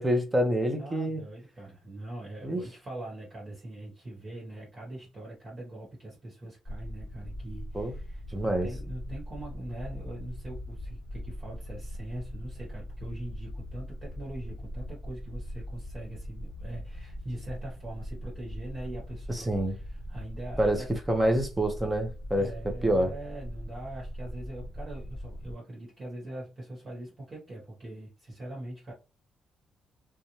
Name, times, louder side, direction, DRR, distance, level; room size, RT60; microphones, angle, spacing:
voice 1, 0.0-1.2 2.4-2.6 7.7-7.9 8.3-8.7 19.3-19.8 20.6-22.5 22.8-23.1, right 1 dB, 15° right, 0.7 m, -27 dB
voice 2, 0.8-20.9 22.4-28.9, right 1 dB, 35° right, 1.3 m, -42 dB
sound 1, 6.6-25.5, equal, 15° left, 1.1 m, -40 dB
2.5 x 2.2 x 3.0 m
cardioid pair, 90°, 0 cm